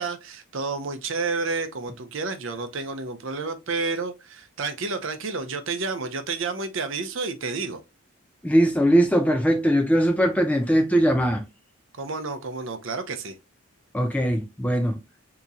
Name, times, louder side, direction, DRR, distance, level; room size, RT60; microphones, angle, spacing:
voice 1, 0.0-7.8 12.0-13.3, right 4 dB, 60° right, 0.7 m, -30 dB
voice 2, 8.4-11.4 13.9-15.0, equal, 5° left, 0.4 m, -20 dB
3.7 x 2.9 x 2.7 m
head